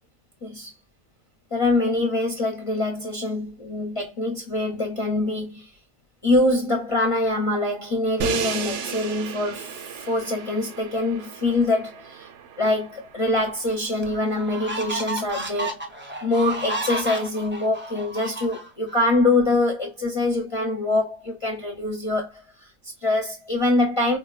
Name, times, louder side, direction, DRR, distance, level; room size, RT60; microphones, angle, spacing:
voice 1, 1.5-5.7 6.2-12.3 12.6-15.8 16.2-22.4 23.0-24.2, left 2 dB, 35° left, 0.7 m, -24 dB
Crash cymbal, 8.2-14.2, right 8 dB, 90° right, 0.9 m, -35 dB
sound 1, 13.4-13.5 14.0-19.0, right 1 dB, 15° right, 0.4 m, -32 dB
4.1 x 2.1 x 2.3 m
omnidirectional pair, 1.2 m